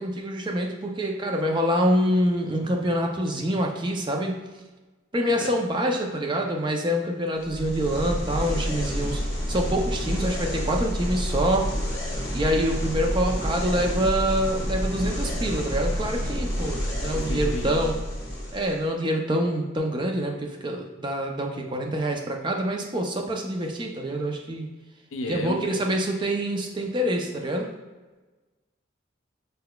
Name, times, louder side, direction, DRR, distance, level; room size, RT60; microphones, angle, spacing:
voice 1, 0.0-4.4 5.1-9.2 9.5-11.7 12.3-18.0 18.5-24.7 25.3-27.7, equal, 20° right, 2 dB, 0.4 m, -26 dB
sound 1, 7.4-18.8, equal, 15° left, 1.2 m, -29 dB
voice 2, 17.1-17.8 25.1-25.8, left 2 dB, 80° left, 6 dB, 0.5 m, -33 dB
5.4 x 3.9 x 2.2 m, 1.2 s
head